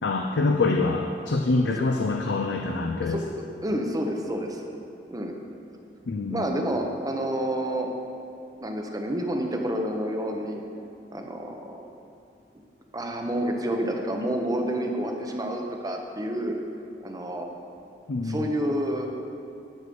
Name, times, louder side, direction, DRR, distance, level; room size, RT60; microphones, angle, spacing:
voice 1, 0.0-3.2 6.1-6.5 18.1-18.4, left 3 dB, 80° left, 3 dB, 0.6 m, -25 dB
voice 2, 3.1-4.6 5.1-5.3 6.3-7.9 8.6-10.6 11.1-11.9 12.9-16.5 17.0-17.5 18.2-19.1, right 1 dB, 20° right, 3 dB, 0.8 m, -29 dB
10.5 x 4.9 x 6.9 m, 2.5 s
head